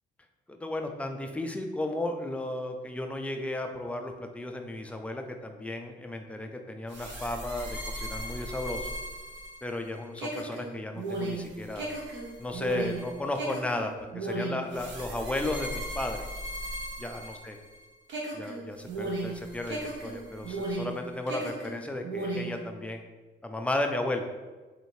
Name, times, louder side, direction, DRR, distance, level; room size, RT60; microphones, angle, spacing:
voice 1, 0.5-8.9 9.6-11.9 12.4-16.2 17.0-17.6 18.3-23.1 23.4-24.3, left 1 dB, 5° left, 4 dB, 0.3 m, -34 dB
sound 1, 6.9-17.8 18.1-21.0 21.3-22.6, right 1 dB, 70° right, 0.8 m, -36 dB
2.8 x 2.6 x 3.0 m, 1.3 s
cardioid pair, 90°, 20 cm